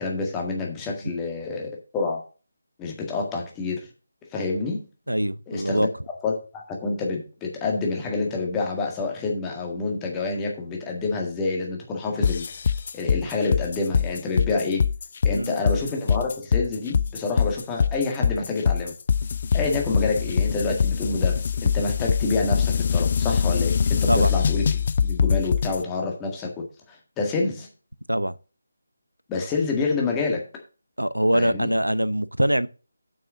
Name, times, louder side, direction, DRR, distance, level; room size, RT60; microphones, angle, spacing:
voice 1, 0.0-2.2 2.8-3.9 4.3-4.9 5.5-5.9 6.2-12.4 12.9-14.9 15.2-18.9 19.5-27.7 29.3-30.4 31.3-31.7, left 3 dB, 10° left, 1.7 m, -28 dB
voice 2, 5.1-5.9 15.3-15.6 24.1-24.3 28.1-28.3 31.0-32.7, equal, 85° right, 0.7 m, -23 dB
sound 1, 12.2-25.8, left 6 dB, 35° left, 0.4 m, -23 dB
7.3 x 6.2 x 6.4 m
figure-of-eight pair, 155°, 0 cm